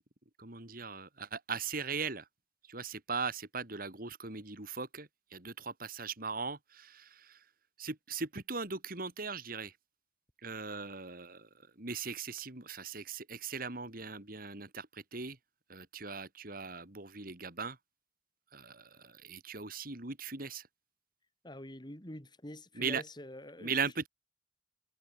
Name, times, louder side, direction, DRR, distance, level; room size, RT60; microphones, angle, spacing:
voice 1, 0.4-2.3 2.7-7.4 7.8-9.7 10.4-11.5 11.8-15.4 15.7-17.8 18.5-20.7 22.7-23.0 23.6-24.1, right 5 dB, 55° right, 3.5 m, -39 dB
voice 2, 21.4-23.7, left 1 dB, 25° left, 4.5 m, -46 dB
head